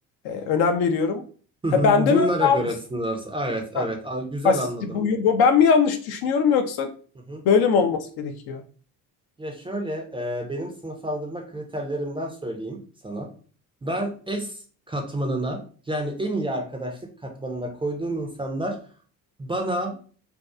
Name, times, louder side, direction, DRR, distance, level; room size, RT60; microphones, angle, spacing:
voice 1, 0.2-1.2 1.7-2.6 3.8-3.9 4.4-6.9 7.4-8.6, left 6 dB, 50° left, 6 dB, 0.5 m, -21 dB
voice 2, 1.6-5.0 7.3-7.4 9.4-13.3 13.8-15.6 15.9-18.8 19.4-19.9, right 1 dB, 10° right, 2 dB, 0.5 m, -29 dB
2.6 x 2.2 x 2.2 m, 0.42 s
hypercardioid pair, 50°, 48 cm